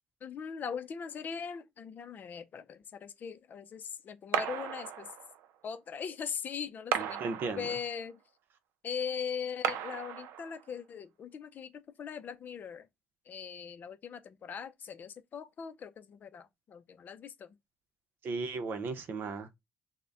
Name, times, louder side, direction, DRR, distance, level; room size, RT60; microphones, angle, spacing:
voice 1, 0.2-5.1 5.6-7.3 7.5-8.2 8.8-12.9 13.3-17.6, left 7 dB, 45° left, 0.5 m, -40 dB
sound 1, 4.3-5.5 6.9-8.0 9.6-10.7, right 9 dB, 90° right, 0.4 m, -35 dB
voice 2, 7.0-7.7 18.2-19.5, right 4 dB, 50° right, 0.7 m, -36 dB
3.9 x 2.2 x 3.4 m
cardioid pair, 125°, 4 cm